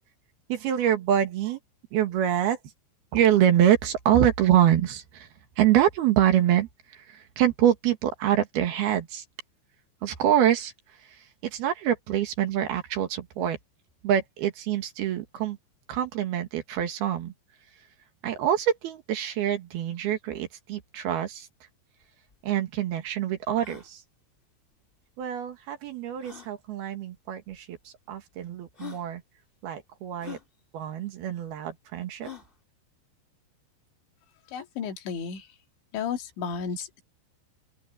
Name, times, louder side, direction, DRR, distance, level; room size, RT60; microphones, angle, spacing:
voice 1, 0.5-1.6 1.9-2.6 3.1-5.3 5.6-9.2 10.0-10.7 11.4-13.6 14.0-15.6 15.9-17.3 18.2-21.5 22.4-24.0 25.2-29.2 29.6-30.4 30.7-32.3, right 10 dB, 65° right, 3.4 m, -25 dB
sound 1, 22.0-22.1 22.3-22.4 22.9-23.0 23.5-23.9 25.2-25.3 26.2-26.5 27.5-27.6 28.3-28.4 28.7-29.1 30.2-30.4 32.2-32.5, left 8 dB, 60° left, 0.5 m, -43 dB
voice 2, 34.5-35.5 35.9-37.0, left 6 dB, 80° left, 4.4 m, -33 dB
open air
omnidirectional pair, 5.2 m